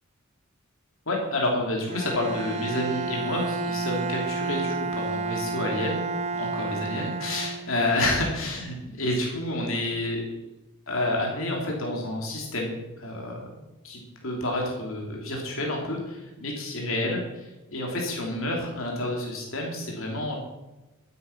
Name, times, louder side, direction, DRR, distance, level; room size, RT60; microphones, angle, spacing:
voice 1, 1.1-6.0 6.3-10.2 10.9-20.3, left 1 dB, 65° left, 0 dB, 3.2 m, -29 dB
Bowed string instrument, 1.9-8.0, right 3 dB, 30° right, 0.6 m, -31 dB
12.0 x 9.4 x 5.9 m, 1.1 s
head